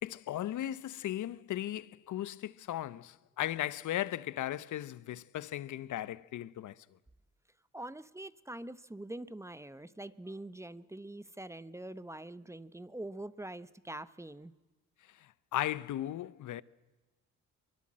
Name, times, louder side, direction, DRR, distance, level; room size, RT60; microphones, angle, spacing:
voice 1, 0.0-6.7 15.5-16.6, left 13 dB, 65° left, 0.9 m, -36 dB
voice 2, 7.7-14.5, right 1 dB, 10° right, 0.9 m, -44 dB
24.0 x 23.5 x 7.5 m
cardioid pair, 90°, 32 cm